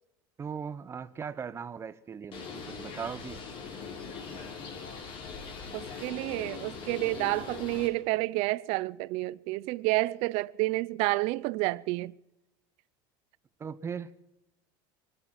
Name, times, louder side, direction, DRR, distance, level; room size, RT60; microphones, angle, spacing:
voice 1, 0.4-3.4 13.6-14.1, right 6 dB, 25° right, 0.8 m, -38 dB
Bird, 2.3-7.9, left 5 dB, 50° left, 4.1 m, -41 dB
voice 2, 5.7-12.1, right 21 dB, 65° right, 0.5 m, -30 dB
23.5 x 10.5 x 5.9 m
supercardioid pair, 130°, 11 cm